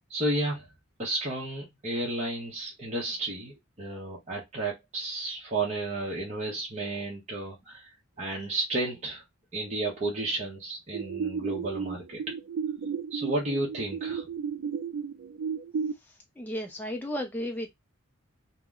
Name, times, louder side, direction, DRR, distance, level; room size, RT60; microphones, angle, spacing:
voice 1, 0.1-0.7 1.0-9.2 9.5-12.2 13.1-14.3, right 2 dB, 35° right, 0.8 m, -32 dB
sound 1, 10.9-15.9, right 6 dB, 65° right, 0.3 m, -33 dB
voice 2, 16.4-17.7, equal, 10° left, 0.4 m, -33 dB
2.8 x 2.0 x 3.5 m
head